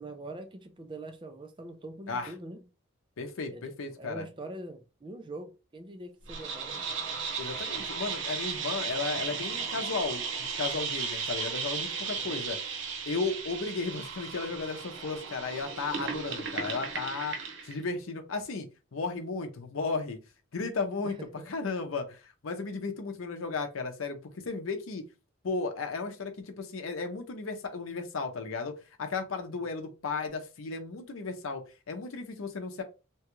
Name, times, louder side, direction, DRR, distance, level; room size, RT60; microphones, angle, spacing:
voice 1, 0.0-2.6 3.5-6.8 12.2-12.4 21.0-21.5 29.6-29.7, right 2 dB, 25° right, 0.4 m, -43 dB
voice 2, 3.2-4.3 7.4-12.6 13.1-17.4 17.6-20.2 20.5-21.2 21.5-25.0 25.4-28.7 29.0-32.8, left 4 dB, 85° left, 0.6 m, -34 dB
sound 1, 6.3-17.8, right 5 dB, 70° right, 0.7 m, -35 dB
2.9 x 2.3 x 3.0 m
head